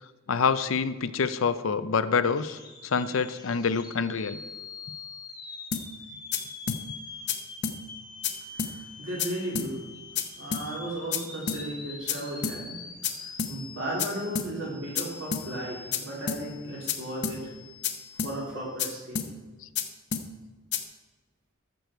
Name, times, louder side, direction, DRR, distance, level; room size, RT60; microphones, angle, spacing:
voice 1, 0.3-4.4, left 5 dB, 85° left, 13 dB, 0.6 m, -26 dB
sound 1, 2.2-19.0, left 4 dB, 20° left, 1.5 m, -45 dB
sound 2, 5.7-5.9 6.3-6.4 6.7-6.8 7.3-7.4 7.6-7.8 8.2-8.3 8.6-8.7 9.2-9.3 9.6-9.7 10.2-10.3 10.5-10.7 11.1-11.2 11.5-11.6 12.1-12.2 12.4-12.6 13.0-13.1 13.4-13.5 14.0-14.1 14.4-14.5 15.0-15.1 15.3-15.5 15.9-16.0 16.3-16.4 16.9-17.0 17.2-17.4 17.8-17.9 18.2-18.3 18.8-18.9 19.2-19.3 19.8-19.9 20.1-20.3 20.7-20.8, left 8 dB, 60° left, 0.9 m, -29 dB
voice 2, 8.5-9.8 10.4-12.8 13.2-17.5 18.2-19.2, right 1 dB, 75° right, -4 dB, 3.9 m, -35 dB
14.0 x 6.8 x 4.6 m, 1.2 s
head